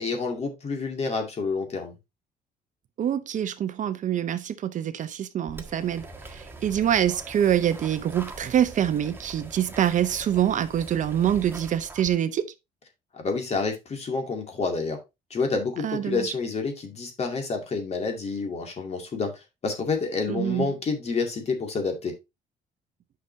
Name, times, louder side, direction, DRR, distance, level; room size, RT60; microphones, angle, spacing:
voice 1, 0.0-1.9 13.1-15.0 15.3-19.3 19.6-22.1, left 4 dB, 40° left, 2.3 m, -28 dB
voice 2, 3.0-12.5 15.8-16.3 20.3-20.7, right 10 dB, 50° right, 0.7 m, -25 dB
sound 1, 5.5-12.1, right 2 dB, 15° right, 1.4 m, -42 dB
9.2 x 5.8 x 2.7 m
cardioid pair, 110°, 17 cm